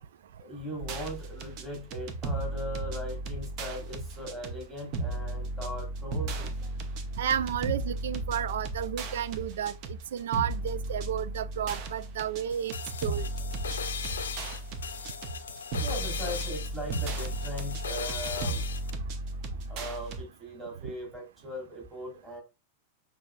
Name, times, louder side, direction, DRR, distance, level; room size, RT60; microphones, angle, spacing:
voice 1, 0.4-6.8 15.8-18.6 19.7-22.4, equal, 10° right, 2.8 m, -39 dB
sound 1, 0.8-20.2, right 2 dB, 40° right, 0.8 m, -35 dB
voice 2, 7.2-12.7 13.0-13.3 20.8-20.9, right 9 dB, 60° right, 0.3 m, -32 dB
sound 2, 12.5-18.9, left 7 dB, 65° left, 0.5 m, -38 dB
6.5 x 3.3 x 2.2 m
figure-of-eight pair, 90°, 0 cm